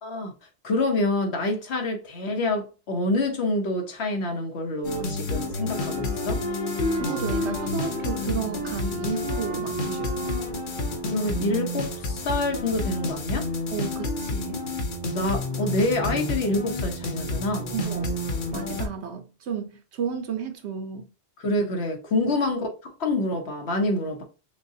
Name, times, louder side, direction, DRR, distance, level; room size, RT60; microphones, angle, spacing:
voice 1, 0.0-0.3 0.6-6.4 11.1-13.5 15.1-17.7 21.4-24.2, left 2 dB, 75° left, 1.1 m, -27 dB
sound 1, 4.8-18.9, left 2 dB, 55° left, 0.8 m, -30 dB
Wind instrument woodwind instrument, 5.7-10.6, left 2 dB, 25° right, 1.0 m, -35 dB
voice 2, 6.9-10.4 13.7-14.6 17.7-18.2 18.5-21.1 22.2-22.3, right 7 dB, 80° right, 1.0 m, -33 dB
6.3 x 2.2 x 2.7 m
omnidirectional pair, 1.1 m